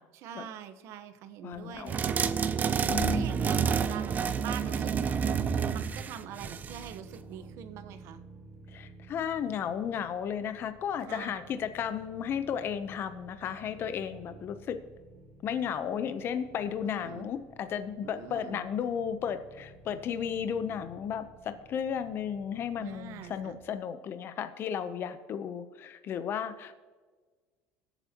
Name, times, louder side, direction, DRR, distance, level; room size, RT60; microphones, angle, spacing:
voice 1, 0.1-2.3 2.8-5.3 5.7-8.2 11.1-11.4 16.8-17.3 18.0-18.7 22.8-23.6, right 9 dB, 65° right, 10 dB, 1.1 m, -44 dB
voice 2, 1.4-2.0 2.9-3.4 8.7-14.8 15.4-26.7, left 8 dB, 45° left, 10 dB, 0.8 m, -34 dB
sound 1, 1.9-6.9, right 6 dB, 30° right, 0.6 m, -29 dB
sound 2, 3.8-23.6, right 2 dB, 10° right, 4.0 m, -53 dB
20.5 x 8.1 x 3.0 m, 1.4 s
cardioid pair, 120°, 5 cm